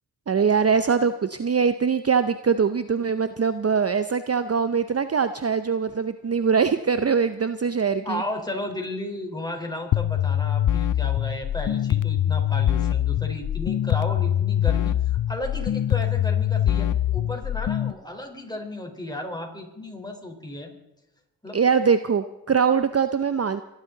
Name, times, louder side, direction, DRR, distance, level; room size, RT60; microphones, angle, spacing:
voice 1, 0.3-8.2 21.5-23.6, right 6 dB, 35° right, 11 dB, 0.7 m, -22 dB
voice 2, 8.0-20.7 21.4-21.6, left 1 dB, 10° left, 2 dB, 4.2 m, -34 dB
sound 1, 9.9-17.9, left 11 dB, 50° left, 0.5 m, -23 dB
27.0 x 11.5 x 3.9 m, 0.92 s
cardioid pair, 40°, 40 cm